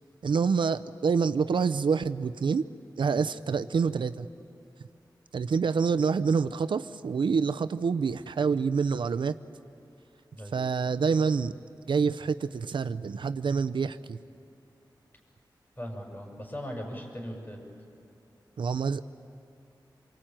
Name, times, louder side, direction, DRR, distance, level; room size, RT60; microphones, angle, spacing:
voice 1, 0.2-2.6 3.0-4.3 5.3-9.3 10.5-11.5 11.9-14.2 18.6-19.0, right 5 dB, 90° right, 12 dB, 0.6 m, -27 dB
voice 2, 15.8-17.6, equal, 25° left, 1 dB, 7.0 m, -39 dB
27.5 x 23.5 x 9.0 m, 2.5 s
wide cardioid pair, 80°, 8 cm